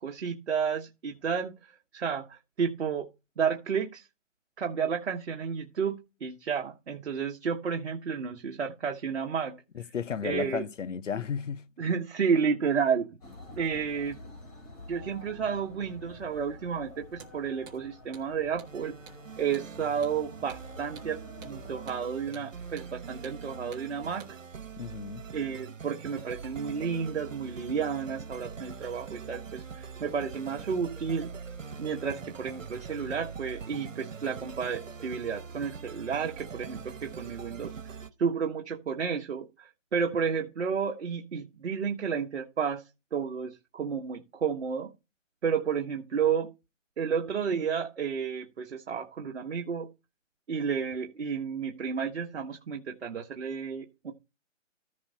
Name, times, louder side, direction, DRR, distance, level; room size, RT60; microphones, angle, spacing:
voice 1, 0.0-1.6 1.9-3.1 3.4-4.1 4.6-9.6 10.2-10.6 11.8-13.1 13.6-14.2 14.9-18.9 19.4-24.2 25.3-31.3 31.8-37.7 38.2-42.8 43.1-44.9 45.4-46.5 47.0-49.9 50.5-54.1, right 6 dB, 60° right, 1.5 m, -31 dB
voice 2, 9.7-11.7 24.8-25.2, left 7 dB, 70° left, 1.0 m, -34 dB
Istanbul namaz near Bosfor, 13.2-22.0, left 2 dB, 30° left, 4.1 m, -49 dB
Hammer, 17.1-17.3 17.7-17.8 18.1-18.3 18.6-18.7 19.1-19.2 19.5-19.7 20.0-20.2 20.5-20.6 21.0-21.1 21.4-21.6 21.9-22.0 22.3-22.5 22.8-22.9 23.2-23.4 23.7-23.9 24.2-24.3, right 6 dB, 15° right, 1.7 m, -49 dB
sound 1, 18.6-38.1, right 5 dB, 75° right, 1.6 m, -43 dB
14.5 x 5.5 x 4.1 m
hypercardioid pair, 160°, 38 cm